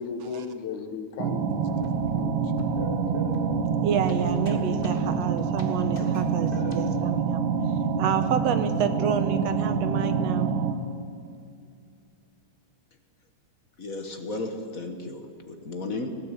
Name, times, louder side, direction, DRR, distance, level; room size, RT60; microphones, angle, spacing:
voice 1, 0.0-2.7 3.0-3.5, left 5 dB, 80° left, 9 dB, 2.7 m, -37 dB
sound 1, 1.2-10.7, right 6 dB, 55° right, 1.6 m, -26 dB
sound 2, 1.7-6.8, left 1 dB, 20° left, 1.9 m, -41 dB
voice 2, 3.8-7.4 8.0-10.5, right 7 dB, 70° right, 10 dB, 1.8 m, -29 dB
voice 3, 13.8-16.1, left 2 dB, 40° left, 5 dB, 1.4 m, -34 dB
19.5 x 16.0 x 9.0 m, 2.3 s
omnidirectional pair, 3.4 m